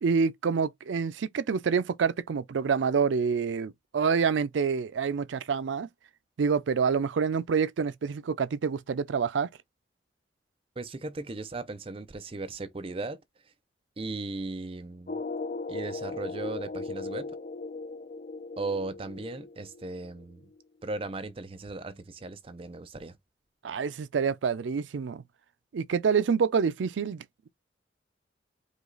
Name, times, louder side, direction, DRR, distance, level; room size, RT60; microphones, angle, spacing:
voice 1, 0.0-5.9 6.4-9.5 23.6-25.2 25.7-27.5, right 6 dB, 90° right, 0.4 m, -27 dB
voice 2, 10.8-13.2 13.4-13.5 14.0-15.2 15.7-17.3 18.6-20.5 20.8-23.2, right 3 dB, 30° right, 0.5 m, -37 dB
sound 1, 15.1-20.6, left 3 dB, 45° left, 0.5 m, -37 dB
5.0 x 2.4 x 3.8 m
head